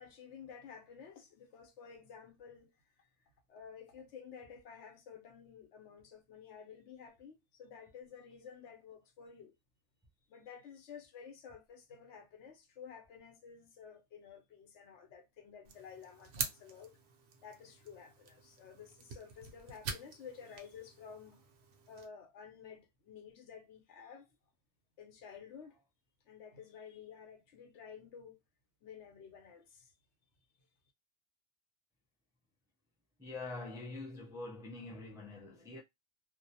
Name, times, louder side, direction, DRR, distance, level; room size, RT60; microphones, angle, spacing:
voice 1, 0.0-2.7 3.5-9.5 10.3-17.0 17.4-21.4 21.9-24.3 25.0-25.8 26.3-28.4 28.8-29.9, left 7 dB, 80° left, 1.0 m, -52 dB
sound 1, 15.6-22.1, right 5 dB, 75° right, 0.8 m, -46 dB
voice 2, 33.2-35.8, left 2 dB, 5° right, 0.3 m, -45 dB
2.3 x 2.0 x 2.7 m
omnidirectional pair, 1.2 m